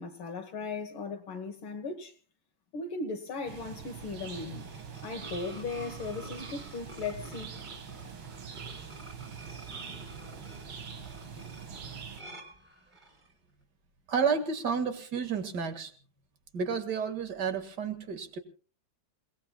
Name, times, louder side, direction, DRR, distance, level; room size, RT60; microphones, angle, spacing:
voice 1, 0.0-2.1 2.7-4.7 5.0-7.5, left 4 dB, 70° left, 2.1 m, -37 dB
sound 1, 3.5-12.2, right 6 dB, 70° right, 2.7 m, -43 dB
sound 2, 4.2-13.3, right 1 dB, 20° right, 3.9 m, -50 dB
voice 2, 14.1-15.9 16.5-18.4, right 6 dB, 50° right, 2.3 m, -31 dB
28.5 x 18.0 x 2.3 m
omnidirectional pair, 2.4 m